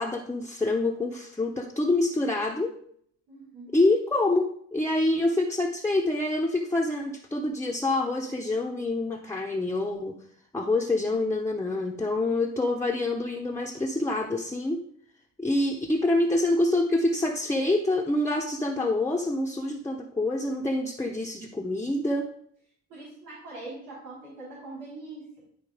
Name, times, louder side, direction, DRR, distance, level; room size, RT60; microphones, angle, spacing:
voice 1, 0.0-2.7 3.7-10.2 10.5-14.8 15.4-22.3, left 2 dB, 10° left, -1 dB, 0.9 m, -26 dB
voice 2, 3.3-3.7 22.9-25.3, right 2 dB, 90° right, -7 dB, 4.3 m, -42 dB
11.5 x 4.2 x 5.0 m, 0.65 s
cardioid pair, 90°, 30 cm